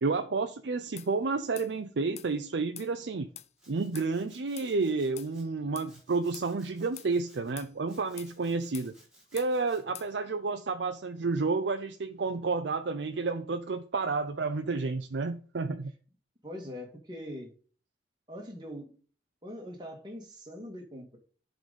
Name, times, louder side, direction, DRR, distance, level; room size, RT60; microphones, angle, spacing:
voice 1, 0.0-3.3 3.7-8.9 9.3-15.9, right 4 dB, 80° right, 0.5 m, -30 dB
sound 1, 1.0-1.1 1.6-1.7 2.2-2.3 2.8-2.9 3.4-3.5 4.0-4.1 4.6-4.7 5.2-5.3 5.8-5.9 6.3-6.5 7.0-7.1 7.6-7.7 8.2-8.3 8.7-8.9 9.4-9.5 10.0-10.1, left 12 dB, 35° left, 0.4 m, -45 dB
Domestic sounds home sounds, 3.6-5.4 5.8-7.5 7.9-9.8, equal, 5° right, 4.6 m, -60 dB
voice 2, 16.4-17.5 18.3-18.9 19.4-21.2, equal, 25° right, 1.8 m, -42 dB
10.5 x 4.0 x 5.1 m
head